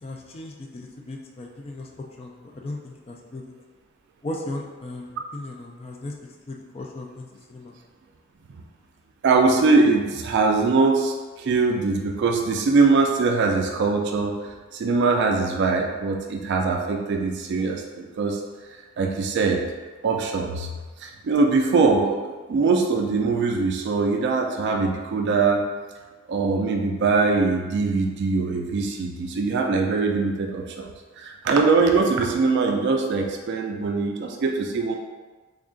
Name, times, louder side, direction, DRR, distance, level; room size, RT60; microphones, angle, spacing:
voice 1, 0.0-3.5 4.2-6.1 6.5-7.7, left 2 dB, 30° left, 0 dB, 0.3 m, -37 dB
voice 2, 9.2-18.4 19.0-19.6 20.0-20.7 21.0-25.7 26.3-30.9 31.2-35.0, right 4 dB, 55° right, 2 dB, 0.3 m, -22 dB
3.5 x 2.3 x 3.7 m, 1.3 s
head